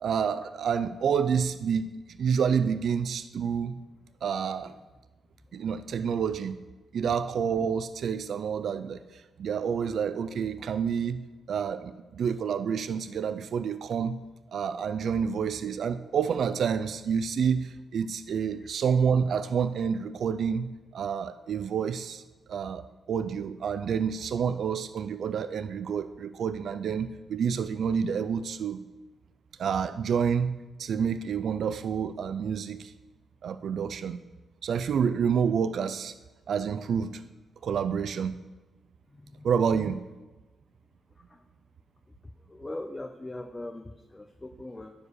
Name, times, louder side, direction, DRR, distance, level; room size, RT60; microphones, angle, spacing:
voice 1, 0.0-3.8 4.2-4.7 5.5-6.6 6.9-11.2 11.5-14.2 14.5-22.2 22.5-28.8 29.6-32.9 33.4-34.2 34.6-36.1 36.5-37.2 37.6-38.4 39.4-40.0, right 7 dB, 65° right, 12 dB, 0.4 m, -28 dB
voice 2, 39.1-39.5 41.3-41.4 42.5-44.9, left 2 dB, 20° left, 5 dB, 0.5 m, -40 dB
9.9 x 4.9 x 6.4 m, 1.2 s
cardioid pair, 110°, 0 cm